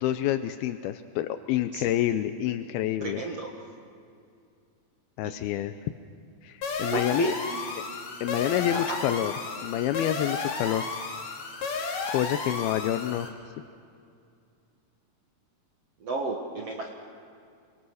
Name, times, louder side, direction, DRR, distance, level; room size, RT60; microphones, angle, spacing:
voice 1, 0.0-3.2 5.2-5.7 6.4-7.3 8.2-9.3 9.6-10.9 12.1-13.3, left 12 dB, 85° left, 9 dB, 2.6 m, -28 dB
voice 2, 3.0-3.5 5.2-5.6 6.9-7.8 8.7-9.0 16.0-16.9, right 3 dB, 50° right, 1 dB, 2.1 m, -33 dB
sound 1, 6.6-13.3, left 4 dB, 50° left, 3.3 m, -33 dB
28.0 x 24.0 x 6.4 m, 2.4 s
omnidirectional pair, 4.3 m